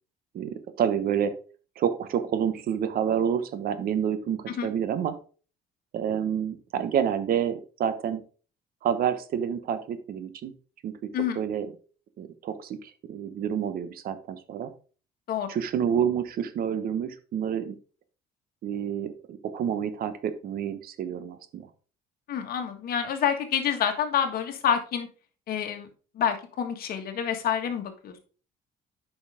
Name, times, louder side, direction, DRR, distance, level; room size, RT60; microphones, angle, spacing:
voice 1, 0.3-1.3 1.8-5.1 5.9-8.2 8.8-10.5 10.8-10.9 11.4-11.7 12.2-14.7 15.5-17.7 18.6-21.7, right 8 dB, 60° right, 11 dB, 1.1 m, -28 dB
voice 2, 22.3-25.1 25.5-25.9 26.1-28.2, left 8 dB, 60° left, 6 dB, 1.7 m, -28 dB
8.6 x 5.6 x 3.6 m, 0.38 s
cardioid pair, 110°, 17 cm